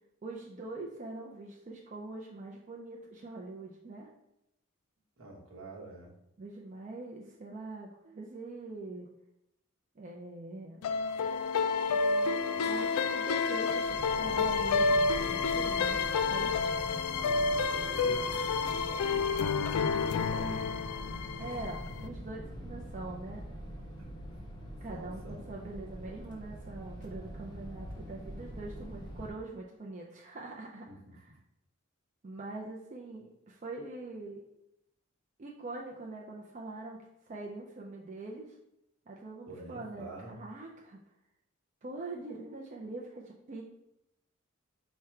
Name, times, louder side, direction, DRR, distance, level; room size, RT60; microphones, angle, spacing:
voice 1, 0.2-4.1 6.4-9.1 10.0-10.8 12.7-16.7 20.4-20.6 21.4-23.5 24.8-31.3 32.2-34.4 35.4-38.6 39.1-41.0 41.8-43.6, right 2 dB, 35° right, -2 dB, 0.4 m, -43 dB
voice 2, 5.2-6.1 17.1-19.8 20.2-20.8 24.0-24.1 24.9-25.4 30.9-31.1 39.5-40.3, right 1 dB, 70° right, -2 dB, 1.0 m, -46 dB
sound 1, 10.8-22.1, left 4 dB, 85° left, 0.3 m, -30 dB
sound 2, 13.9-29.3, equal, 20° left, 0.6 m, -44 dB
4.8 x 2.2 x 4.4 m, 0.82 s
head